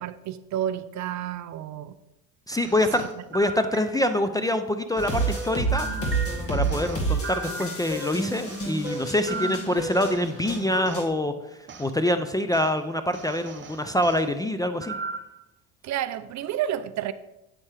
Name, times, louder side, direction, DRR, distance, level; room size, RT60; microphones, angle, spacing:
voice 1, 0.0-1.9 3.0-3.1 15.8-17.1, right 11 dB, 45° right, 0.5 m, -30 dB
voice 2, 2.5-3.0 3.3-5.9 6.5-11.3 11.8-15.0, left 1 dB, 10° left, 0.4 m, -25 dB
sound 1, 2.5-4.3 5.0-8.1 8.5-11.1 11.7-11.9 12.5-12.7 13.1-14.2 14.8-15.4, right 3 dB, 25° right, 1.0 m, -38 dB
sound 2, 5.0-11.1, right 3 dB, 35° left, 2.0 m, -29 dB
8.5 x 7.1 x 3.3 m
hypercardioid pair, 80°, 42 cm